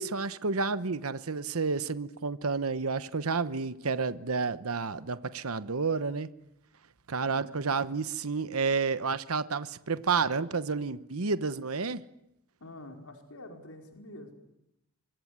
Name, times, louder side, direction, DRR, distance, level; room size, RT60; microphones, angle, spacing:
voice 1, 0.0-6.3 7.1-12.0, right 4 dB, 90° right, 1.0 m, -30 dB
voice 2, 7.2-7.6 12.6-14.3, left 1 dB, 90° left, 4.8 m, -47 dB
25.0 x 22.5 x 9.6 m
head